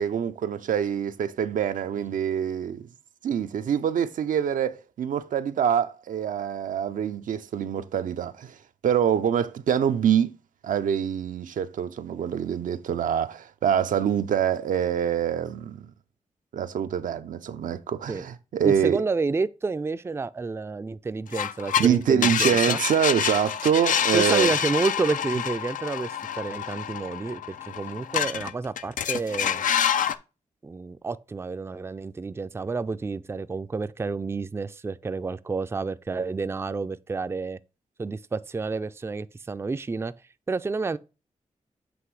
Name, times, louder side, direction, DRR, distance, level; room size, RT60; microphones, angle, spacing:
voice 1, 0.0-2.8 3.2-8.5 8.8-10.3 10.6-15.9 16.5-19.0 21.8-24.6, right 8 dB, 80° right, 0.5 m, -25 dB
voice 2, 18.6-22.8 24.1-26.1 26.4-29.6 30.6-37.6 38.0-40.1 40.5-41.0, right 4 dB, 20° right, 0.3 m, -29 dB
sound 1, 21.3-21.9 22.2-28.5 28.8-30.1, left 9 dB, 80° left, 0.4 m, -27 dB
7.8 x 3.1 x 4.7 m
cardioid pair, 60°, 13 cm